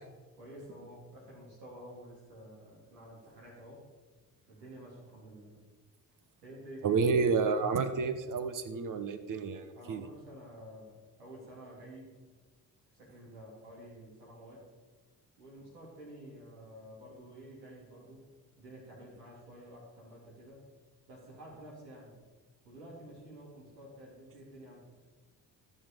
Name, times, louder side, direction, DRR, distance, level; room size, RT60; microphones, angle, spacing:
voice 1, 0.4-3.8 4.5-5.6 6.4-7.0 9.7-12.2 12.9-14.7 15.4-18.3 18.6-20.6 21.1-22.1 22.6-24.9, right 1 dB, 80° right, -4 dB, 3.3 m, -50 dB
voice 2, 6.8-10.1, right 5 dB, 40° right, 10 dB, 1.1 m, -30 dB
14.0 x 6.5 x 5.2 m, 1.3 s
figure-of-eight pair, 50°, 47 cm